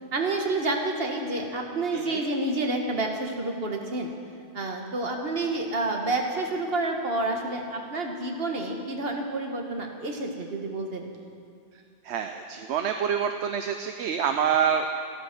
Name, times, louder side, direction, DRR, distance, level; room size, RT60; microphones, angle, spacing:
voice 1, 0.1-4.1 4.5-11.1, right 2 dB, 55° right, 2 dB, 1.7 m, -29 dB
voice 2, 12.0-14.9, right 7 dB, 75° right, 6 dB, 0.9 m, -26 dB
14.0 x 12.5 x 6.1 m, 2.3 s
omnidirectional pair, 1.2 m